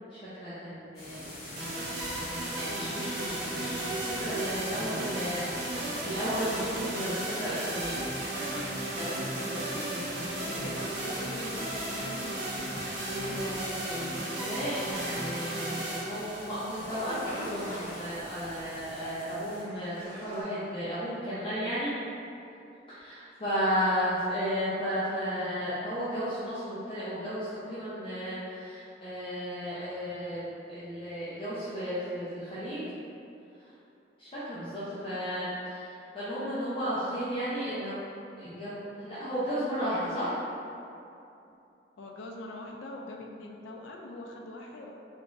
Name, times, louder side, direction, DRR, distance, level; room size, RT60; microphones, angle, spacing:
voice 1, 0.1-1.7 2.5-8.0 8.9-10.7 12.7-21.9 22.9-32.8 34.2-38.0 38.4-40.4, equal, 30° left, -13 dB, 0.6 m, -34 dB
sound 1, 0.9-19.6, left 1 dB, 55° left, 1.1 m, -44 dB
sound 2, 1.6-17.6, right 1 dB, 70° right, 0.6 m, -35 dB
sound 3, 8.2-9.4 10.7-11.8 12.6-13.6 14.0-14.1 14.4-16.0 16.6-18.6 18.8-18.9 19.5-20.4, equal, 25° right, 1.1 m, -44 dB
voice 2, 10.2-12.5 12.9-13.5 34.8-35.1 42.0-44.9, left 1 dB, 90° left, 0 dB, 0.3 m, -43 dB
3.5 x 3.0 x 2.5 m, 2.7 s
head